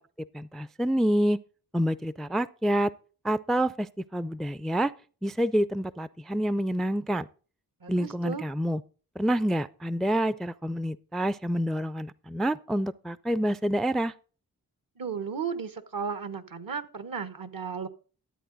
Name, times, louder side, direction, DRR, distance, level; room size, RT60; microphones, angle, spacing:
voice 1, 0.3-1.4 1.7-2.9 3.2-4.9 5.2-7.3 7.9-8.8 9.2-14.1, right 1 dB, ahead, 0.4 m, -27 dB
voice 2, 7.8-8.4 15.0-17.9, right 6 dB, 60° right, 1.3 m, -34 dB
13.0 x 8.5 x 4.0 m
cardioid pair, 45°, 38 cm